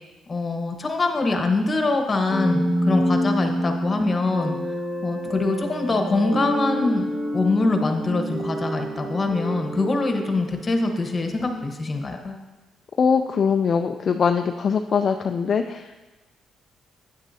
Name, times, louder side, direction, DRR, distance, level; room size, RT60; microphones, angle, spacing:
voice 1, 0.3-4.6 5.0-7.1 7.3-12.4, left 3 dB, 30° left, 4 dB, 1.2 m, -24 dB
sound 1, 2.3-11.3, equal, 30° right, 1.6 m, -27 dB
voice 2, 13.0-15.9, left 6 dB, 50° left, 6 dB, 0.4 m, -22 dB
9.2 x 9.1 x 2.8 m, 1.2 s
cardioid pair, 90°, 0 cm